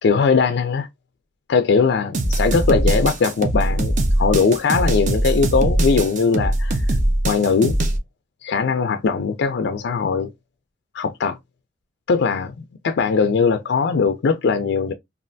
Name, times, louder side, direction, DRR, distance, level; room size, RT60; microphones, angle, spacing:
voice 1, 0.0-0.9 1.5-6.8 7.2-7.8 8.4-10.3 10.9-11.4 12.1-12.5 12.8-14.9, left 5 dB, 65° left, 0.4 m, -20 dB
sound 1, 2.1-8.0, right 1 dB, 45° right, 0.6 m, -21 dB
3.2 x 2.4 x 2.5 m
head